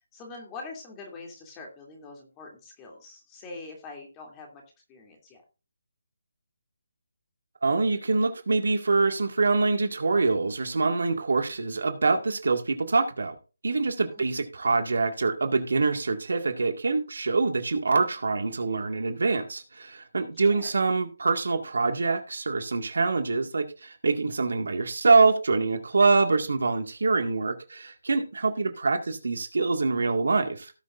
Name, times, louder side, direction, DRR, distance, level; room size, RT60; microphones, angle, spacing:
voice 1, 0.0-4.6 4.9-5.4 14.2-14.3 20.4-20.7, left 3 dB, 15° left, 1 dB, 2.8 m, -44 dB
voice 2, 7.6-13.3 13.6-30.7, right 3 dB, 70° right, 5 dB, 1.9 m, -25 dB
17.5 x 6.7 x 2.6 m, 0.33 s
figure-of-eight pair, 160°, 0 cm